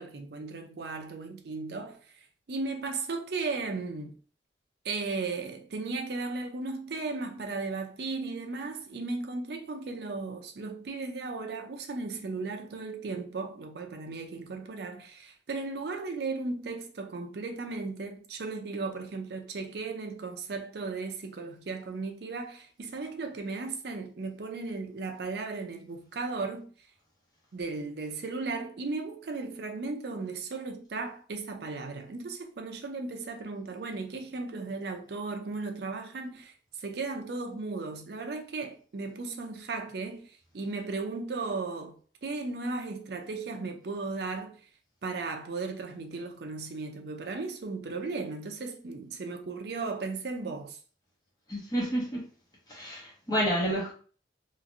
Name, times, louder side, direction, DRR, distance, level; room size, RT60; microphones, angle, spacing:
voice 1, 0.0-2.0 2.5-4.1 4.8-26.7 27.5-41.9 42.2-44.6 45.0-50.8, right 3 dB, 60° right, 0.5 m, -36 dB
voice 2, 51.5-52.2 52.7-53.9, equal, 20° left, 1.0 m, -29 dB
3.0 x 2.4 x 2.5 m
head